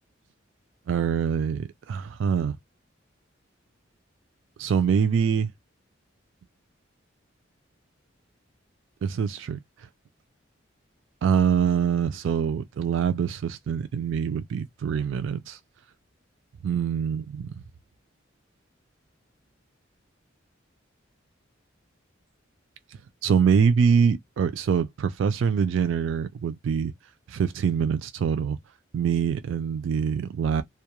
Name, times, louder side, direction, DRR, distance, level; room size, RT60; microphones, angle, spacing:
voice 1, 0.9-2.6 4.6-5.5 9.0-9.6 11.2-15.6 16.6-17.6 23.2-26.9 27.3-28.6 28.9-30.6, right 7 dB, 70° right, 0.3 m, -24 dB
2.2 x 2.1 x 2.9 m
head